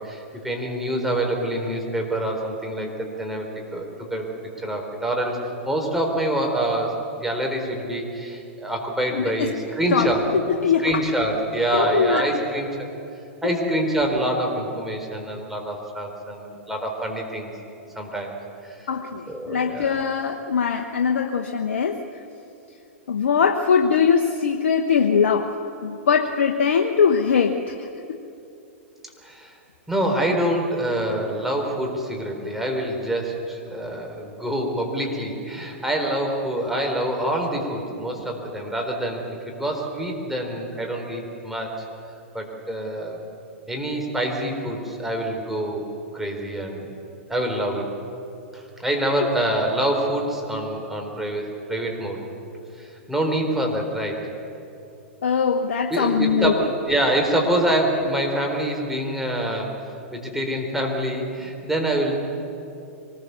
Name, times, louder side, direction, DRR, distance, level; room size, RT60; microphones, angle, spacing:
voice 1, 0.0-3.5 3.7-4.3 4.6-5.4 5.6-6.9 7.2-10.2 10.8-12.9 13.4-17.5 18.0-18.4 18.6-18.9 19.3-20.0 29.2-29.5 29.9-41.9 42.3-43.2 43.7-46.9 47.3-47.9 48.5-52.2 52.8-54.3 55.9-59.7 60.1-62.2, right 1 dB, 5° right, 1 dB, 4.1 m, -26 dB
voice 2, 9.1-9.5 9.9-10.1 10.3-10.9 11.7-12.4 18.9-22.0 23.1-25.6 25.8-27.9 49.2-49.3 55.2-56.5, left 6 dB, 75° left, 4 dB, 1.1 m, -21 dB
24.5 x 20.0 x 6.9 m, 2.7 s
hypercardioid pair, 115°, 7 cm